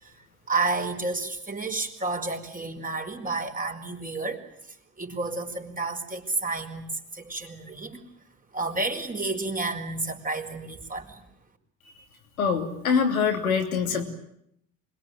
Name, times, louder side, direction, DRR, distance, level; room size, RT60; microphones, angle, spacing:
voice 1, 0.5-4.4 5.0-8.0 8.5-11.3, right 3 dB, 20° right, 5 dB, 4.8 m, -31 dB
voice 2, 12.4-14.0, left 6 dB, 85° left, 3 dB, 3.2 m, -24 dB
26.0 x 22.0 x 9.2 m, 0.74 s
hypercardioid pair, 60°, 41 cm